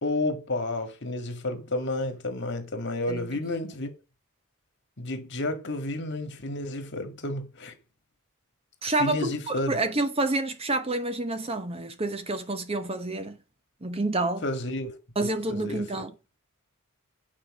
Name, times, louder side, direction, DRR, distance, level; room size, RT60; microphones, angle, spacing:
voice 1, 0.0-3.9 5.0-7.7 9.0-9.8 14.4-15.0 15.5-16.0, left 2 dB, 50° left, 1.9 m, -31 dB
voice 2, 3.1-3.6 8.8-13.4 13.8-14.4 15.2-16.1, right 2 dB, 25° right, 0.8 m, -29 dB
8.8 x 4.7 x 5.9 m
head